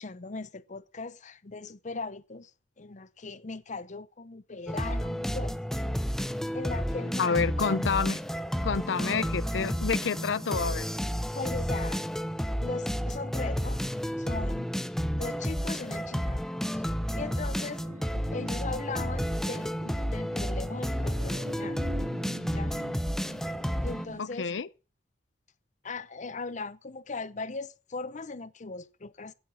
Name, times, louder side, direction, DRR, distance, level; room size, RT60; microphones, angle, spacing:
voice 1, 0.0-2.5 2.8-5.6 6.2-7.5 11.3-12.0 12.6-13.8 14.2-14.7 15.1-16.4 16.7-16.8 17.1-17.8 18.3-21.8 22.5-22.8 23.8-24.5 25.8-29.3, left 3 dB, 40° left, 0.7 m, -39 dB
sound 1, 4.7-24.1, equal, 5° left, 0.7 m, -31 dB
voice 2, 7.2-8.2 8.6-10.9 24.2-24.7, left 5 dB, 75° left, 0.6 m, -28 dB
sound 2, 16.9-24.2, equal, 40° right, 2.0 m, -44 dB
16.0 x 8.2 x 6.2 m
head